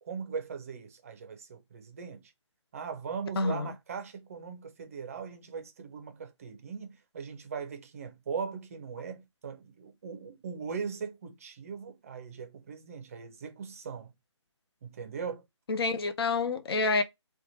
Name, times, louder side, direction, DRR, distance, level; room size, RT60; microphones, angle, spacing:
voice 1, 0.0-2.3 2.7-14.1 14.8-15.4, right 6 dB, 30° right, 0.5 m, -39 dB
voice 2, 3.4-3.7 15.7-17.0, left 3 dB, 50° left, 0.5 m, -28 dB
2.9 x 2.2 x 2.6 m
figure-of-eight pair, 160°, 16 cm